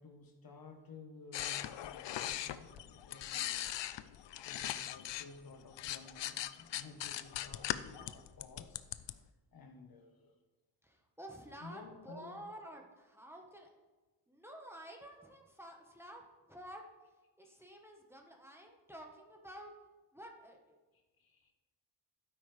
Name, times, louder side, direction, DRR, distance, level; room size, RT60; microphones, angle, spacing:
voice 1, 0.0-3.7 4.4-9.1 9.5-10.3 11.6-12.4 17.4-17.5 21.2-21.5, left 3 dB, 55° left, 4 dB, 1.3 m, -54 dB
sound 1, 1.3-5.3 5.6-9.1, left 12 dB, 75° left, 0.6 m, -40 dB
voice 2, 10.8-13.7 14.3-16.2 16.5-16.8 17.4-19.7 20.1-20.8, right 1 dB, 5° right, 1 dB, 1.3 m, -51 dB
12.5 x 9.7 x 3.4 m, 1.2 s
cardioid pair, 105°, 43 cm